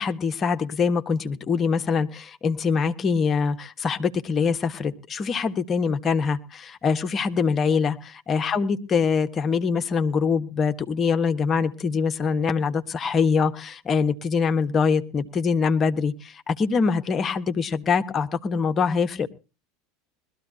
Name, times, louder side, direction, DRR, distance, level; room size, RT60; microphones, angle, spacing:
voice 1, 0.0-19.3, left 5 dB, 30° left, 1.3 m, -24 dB
21.0 x 13.5 x 2.8 m
figure-of-eight pair, 80°, 0 cm